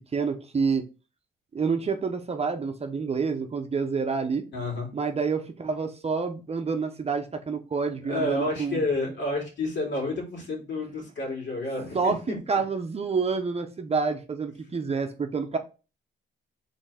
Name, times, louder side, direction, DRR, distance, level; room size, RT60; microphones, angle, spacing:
voice 1, 0.1-0.8 1.5-4.4 4.9-8.8 11.9-15.6, right 5 dB, 30° right, 6 dB, 0.8 m, -28 dB
voice 2, 4.5-4.9 8.1-12.4, left 2 dB, 65° left, -1 dB, 2.6 m, -30 dB
4.4 x 3.4 x 3.4 m, 0.32 s
cardioid pair, 90°, 20 cm